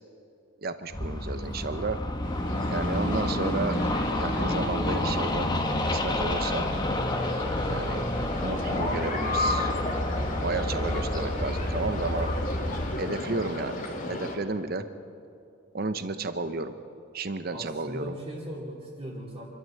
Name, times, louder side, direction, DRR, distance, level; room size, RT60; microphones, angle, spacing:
voice 1, 0.6-2.0 2.7-3.8 4.1-5.5 5.9-6.6 7.7-8.0 8.4-9.7 10.1-12.3 13.0-14.8 15.7-16.8 17.1-18.1, right 3 dB, 50° right, 10 dB, 0.9 m, -32 dB
sound 1, 0.9-13.0, left 1 dB, 20° left, 1.2 m, -29 dB
sound 2, 2.2-14.4, left 2 dB, 40° left, 2.6 m, -34 dB
voice 2, 17.5-19.4, equal, 25° right, -7 dB, 2.8 m, -39 dB
27.0 x 13.0 x 7.7 m, 2.5 s
head